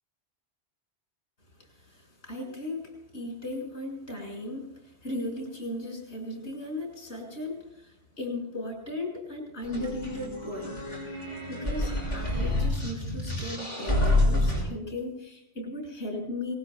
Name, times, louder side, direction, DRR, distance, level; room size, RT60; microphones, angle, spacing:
voice 1, 1.6-10.8 11.5-16.5, left 1 dB, 85° left, 1 dB, 6.2 m, -37 dB
sound 1, 9.6-14.6, left 1 dB, 40° left, 7.1 m, -28 dB
26.5 x 20.0 x 2.3 m, 0.81 s
omnidirectional pair, 1.1 m